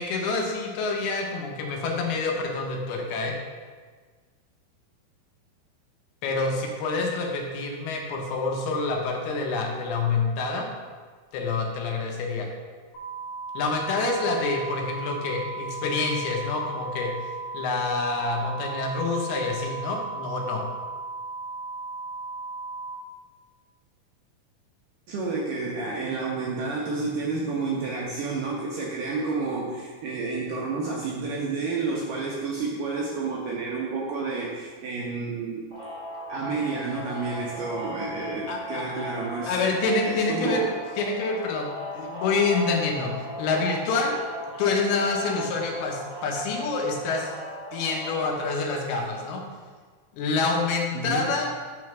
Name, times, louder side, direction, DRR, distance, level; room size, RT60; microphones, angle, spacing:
voice 1, 0.0-3.4 6.2-10.7 11.3-12.5 13.5-17.1 17.5-20.6 38.5-39.0 39.5-40.7 41.0-43.1 43.4-44.2 44.6-47.3 47.7-49.4 50.1-51.5, left 3 dB, 80° left, 1 dB, 2.7 m, -27 dB
sound 1, 12.9-23.0, right 3 dB, 60° left, 2.3 m, -36 dB
voice 2, 25.1-35.6 36.3-39.8 40.0-40.7 50.9-51.3, right 3 dB, 75° right, -3 dB, 2.0 m, -30 dB
sound 2, 35.7-48.5, left 1 dB, 45° right, 0.9 m, -37 dB
6.3 x 3.2 x 5.9 m, 1.5 s
omnidirectional pair, 4.5 m